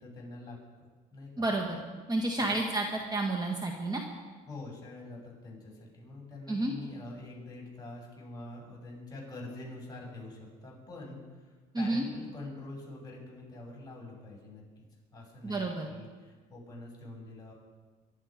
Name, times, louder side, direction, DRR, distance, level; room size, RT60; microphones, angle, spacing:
voice 1, 0.0-1.5 2.4-2.6 4.5-14.6 15.1-17.5, left 2 dB, 25° left, -3 dB, 7.0 m, -45 dB
voice 2, 1.4-1.8 2.1-2.8 3.1-4.0 6.5-6.7 11.7-12.0 15.4-15.9, right 2 dB, 25° right, 1 dB, 1.8 m, -30 dB
23.5 x 11.5 x 5.2 m, 1.4 s
cardioid pair, 110°, 17 cm